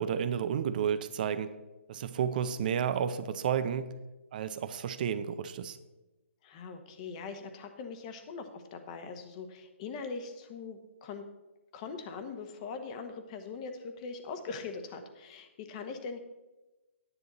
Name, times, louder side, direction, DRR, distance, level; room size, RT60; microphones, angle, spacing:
voice 1, 0.0-1.5 1.9-4.0 4.3-5.8, right 8 dB, 40° right, 11 dB, 0.6 m, -31 dB
voice 2, 6.4-11.2 11.7-16.2, left 5 dB, 30° left, 7 dB, 1.1 m, -41 dB
10.0 x 9.9 x 4.1 m, 1.1 s
hypercardioid pair, 155°, 7 cm